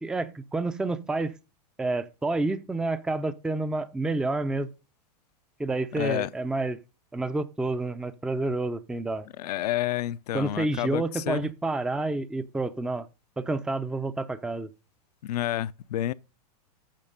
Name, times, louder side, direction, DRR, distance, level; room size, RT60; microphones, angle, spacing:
voice 1, 0.0-1.3 1.8-4.7 5.6-6.8 7.1-9.3 10.3-13.1 13.4-14.7, right 2 dB, 5° right, 0.5 m, -29 dB
voice 2, 5.9-6.3 9.4-11.5 15.2-16.1, left 13 dB, 70° left, 0.5 m, -29 dB
9.0 x 5.8 x 5.3 m
hypercardioid pair, 110°, 21 cm